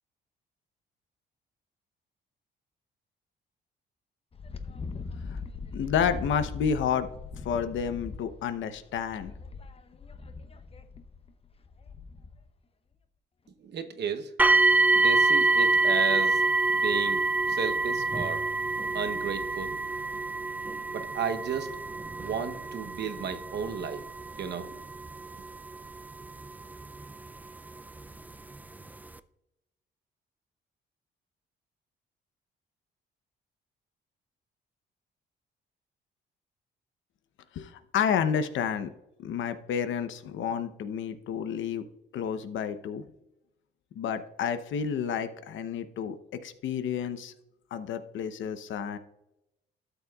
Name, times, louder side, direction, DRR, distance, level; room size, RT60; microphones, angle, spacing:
Wind, 4.3-12.5, left 4 dB, 30° left, 0.7 m, -40 dB
voice 1, 5.7-7.1 7.4-9.3 37.5-38.9 39.2-41.8 42.1-43.0 44.0-47.3 47.7-49.0, left 7 dB, 75° left, 10 dB, 0.8 m, -30 dB
voice 2, 13.6-14.3 14.9-16.5 16.7-17.2 17.5-18.4 18.9-19.8 20.9-21.8 22.2-24.0 24.4-24.8, right 6 dB, 60° right, 8 dB, 0.9 m, -33 dB
sound 1, 14.4-27.3 28.1-28.2 28.8-28.9, right 3 dB, 10° right, 0.4 m, -26 dB
12.5 x 7.0 x 2.4 m, 0.86 s
cardioid pair, 90°, 20 cm